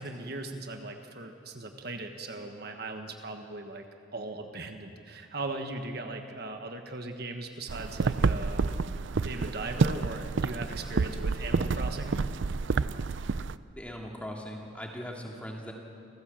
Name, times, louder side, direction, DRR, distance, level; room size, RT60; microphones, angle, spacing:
voice 1, 0.0-3.8 4.1-8.7 9.1-12.2, right 2 dB, 50° right, 5 dB, 1.3 m, -38 dB
sound 1, 7.7-13.6, right 4 dB, 65° right, 0.5 m, -29 dB
voice 2, 13.8-15.7, equal, 5° left, 0 dB, 2.4 m, -39 dB
28.5 x 15.0 x 7.5 m, 2.5 s
head